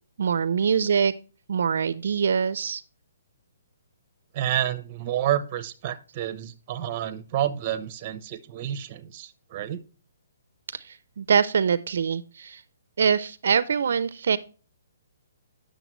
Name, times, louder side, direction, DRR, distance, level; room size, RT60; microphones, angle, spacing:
voice 1, 0.2-1.1 1.5-2.8 10.8-12.6 13.0-14.4, right 6 dB, 65° right, 15 dB, 0.4 m, -24 dB
voice 2, 4.3-9.8, right 11 dB, 30° right, 13 dB, 0.7 m, -29 dB
9.1 x 6.5 x 3.0 m, 0.37 s
hypercardioid pair, 165°, 0 cm